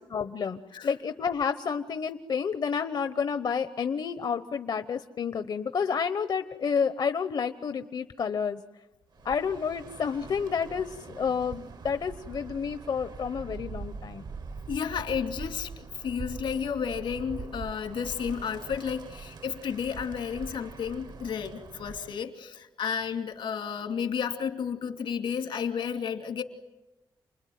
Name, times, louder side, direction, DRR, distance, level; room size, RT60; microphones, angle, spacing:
voice 1, 0.1-8.6 9.2-14.2, left 6 dB, 60° left, 9 dB, 1.0 m, -30 dB
Bird, 9.1-22.2, right 4 dB, 60° right, 1.1 m, -43 dB
voice 2, 14.7-26.4, left 7 dB, 85° left, 6 dB, 2.6 m, -32 dB
29.0 x 21.0 x 9.4 m, 1.0 s
cardioid pair, 80°, 8 cm